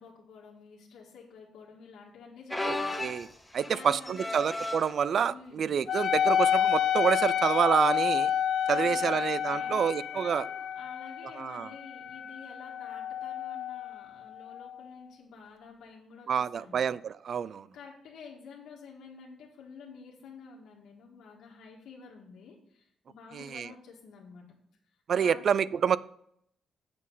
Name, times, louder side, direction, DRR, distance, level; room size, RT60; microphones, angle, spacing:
voice 1, 0.0-3.1 3.4-4.5 5.2-5.8 8.7-16.9 17.7-24.5 25.1-25.7, left 5 dB, 85° left, -2 dB, 1.7 m, -50 dB
sound 1, 2.5-5.0 5.7-6.0 6.3-6.4 7.3-7.6 9.2-9.3, left 2 dB, 5° left, 0.9 m, -36 dB
voice 2, 2.6-3.3 3.5-8.3 8.7-10.4 11.4-11.7 16.3-17.7 23.3-23.7 25.1-26.0, right 7 dB, 45° right, 19 dB, 0.3 m, -28 dB
Wind instrument woodwind instrument, 5.9-14.8, left 9 dB, 50° left, 0.3 m, -30 dB
8.3 x 7.5 x 5.5 m, 0.71 s
cardioid pair, 170°, 0 cm